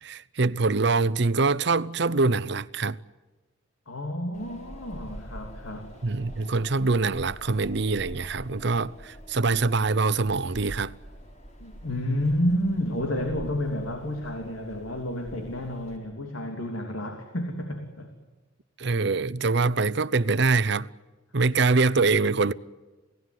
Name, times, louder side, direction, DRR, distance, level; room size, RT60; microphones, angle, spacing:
voice 1, 0.0-3.0 6.0-11.0 18.8-20.9 21.3-22.5, right 3 dB, 60° right, 0.7 m, -24 dB
voice 2, 3.9-5.9 11.6-18.1, left 1 dB, 85° left, 3.0 m, -30 dB
Wind, 4.3-16.0, equal, 35° left, 4.2 m, -45 dB
29.0 x 17.5 x 9.5 m
head